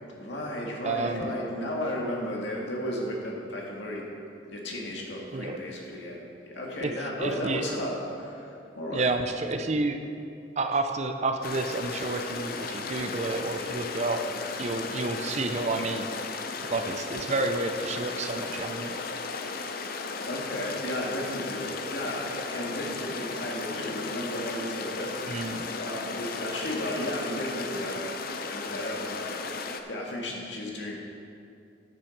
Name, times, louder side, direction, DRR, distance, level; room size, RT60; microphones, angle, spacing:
voice 1, 0.1-4.1 4.5-9.1 20.3-25.1 25.8-28.0 28.5-30.9, left 1 dB, 65° left, -2 dB, 2.0 m, -34 dB
voice 2, 0.8-1.4 5.3-5.6 6.8-7.6 8.9-10.0 10.6-14.2 14.6-16.1 16.6-19.0 25.3-25.6, right 3 dB, 35° right, 7 dB, 0.5 m, -30 dB
sound 1, 11.4-29.8, left 4 dB, 50° left, 0.6 m, -35 dB
9.0 x 7.4 x 6.5 m, 2.6 s
head